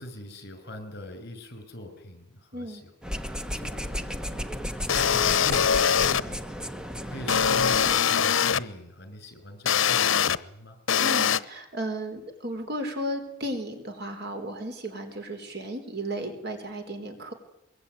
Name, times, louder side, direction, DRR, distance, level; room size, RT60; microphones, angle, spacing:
voice 1, 0.0-2.9 3.5-4.4 5.1-6.4 7.1-10.8, left 1 dB, 55° left, 8 dB, 6.2 m, -41 dB
sound 1, 3.0-8.0, equal, 5° right, 1.2 m, -34 dB
sound 2, 4.9-6.2 7.3-8.6 9.7-10.4 10.9-11.4, left 8 dB, 80° left, 0.9 m, -22 dB
voice 2, 11.0-17.3, right 1 dB, 55° right, 6 dB, 4.4 m, -34 dB
23.5 x 22.0 x 9.5 m, 0.85 s
head